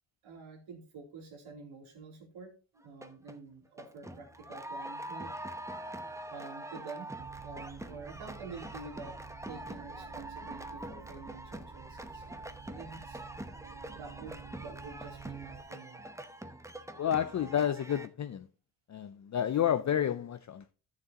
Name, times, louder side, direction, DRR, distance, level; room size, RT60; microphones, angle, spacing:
voice 1, 0.2-6.0 6.3-7.1 7.4-13.2 13.6-16.0, right 4 dB, 85° right, 3.3 m, -48 dB
sound 1, 2.8-3.4 3.8-18.1, right 1 dB, 5° right, 0.8 m, -44 dB
sound 2, 7.2-15.6, right 6 dB, 55° right, 1.5 m, -50 dB
voice 2, 17.0-18.5 18.9-20.7, left 10 dB, 40° left, 0.5 m, -30 dB
13.5 x 6.7 x 2.9 m
cardioid pair, 90°, 47 cm